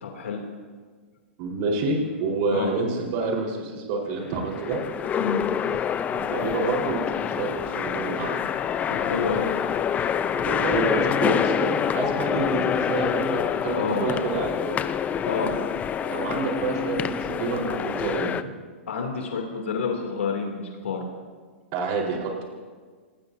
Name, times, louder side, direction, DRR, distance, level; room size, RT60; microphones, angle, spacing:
voice 1, 0.0-0.4 2.5-2.7 5.2-5.4 8.9-9.4 13.8-14.1 15.2-15.5 18.9-21.0, left 5 dB, 85° left, 1 dB, 2.9 m, -28 dB
voice 2, 1.4-4.8 6.1-8.4 10.3-14.8 16.0-18.5 21.7-22.4, right 3 dB, 50° right, -1 dB, 4.3 m, -28 dB
sound 1, 4.1-18.4, left 8 dB, 20° left, 0.7 m, -26 dB
27.5 x 19.0 x 2.8 m, 1.5 s
hypercardioid pair, 125°, 7 cm